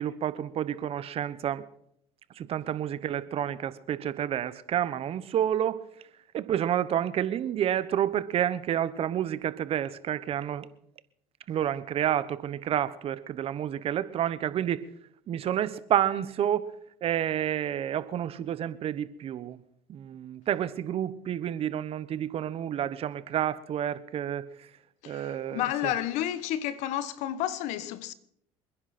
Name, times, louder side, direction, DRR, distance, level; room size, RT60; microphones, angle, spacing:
voice 1, 0.0-1.6 2.4-5.8 6.3-10.7 11.5-14.8 15.3-16.7 17.0-19.6 19.9-24.7 25.1-25.9, right 10 dB, 55° right, 1.2 m, -29 dB
voice 2, 25.0-28.1, left 12 dB, 75° left, 1.2 m, -31 dB
28.0 x 10.5 x 4.4 m
supercardioid pair, 75°, 12 cm